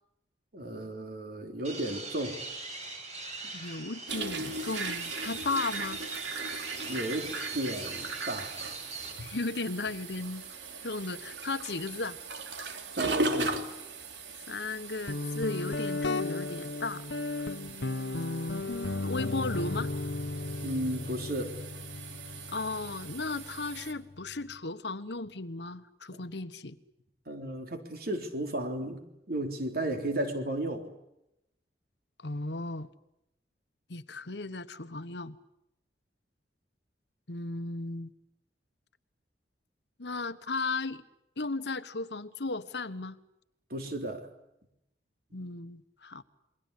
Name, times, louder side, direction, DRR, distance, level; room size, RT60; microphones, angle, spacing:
voice 1, 0.5-2.4 3.4-3.5 6.9-8.6 13.0-13.6 20.6-21.6 26.1-26.3 27.3-30.9 43.7-44.3 45.3-45.4, right 1 dB, 55° right, 5 dB, 3.7 m, -34 dB
sound 1, 1.6-9.1, right 3 dB, 40° right, 6.9 m, -41 dB
voice 2, 3.5-6.0 9.2-10.4 10.8-12.2 14.5-17.1 18.7-19.9 22.5-26.8 32.2-32.9 33.9-35.4 37.3-38.1 40.0-41.0 41.4-43.2 45.3-46.2, left 3 dB, 70° left, 12 dB, 1.2 m, -35 dB
sound 2, 4.1-23.9, right 3 dB, 75° right, 2.9 m, -39 dB
Guitar, 15.1-24.6, left 2 dB, 90° left, 1.1 m, -35 dB
28.5 x 22.0 x 8.3 m, 0.85 s
head